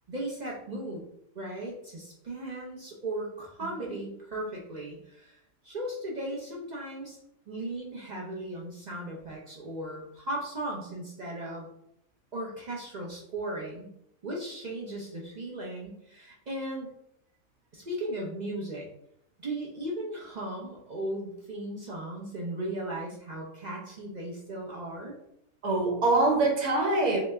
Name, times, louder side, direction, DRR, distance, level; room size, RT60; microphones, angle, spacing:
voice 1, 0.1-1.0 1.3-5.4 5.6-7.2 7.5-11.7 12.3-13.9 14.2-16.9 17.7-18.9 19.4-25.2, right 1 dB, 45° right, -3 dB, 0.5 m, -37 dB
voice 2, 3.6-3.9 25.6-27.2, right 2 dB, 85° right, 0 dB, 1.3 m, -25 dB
3.4 x 3.0 x 3.2 m, 0.74 s
omnidirectional pair, 1.5 m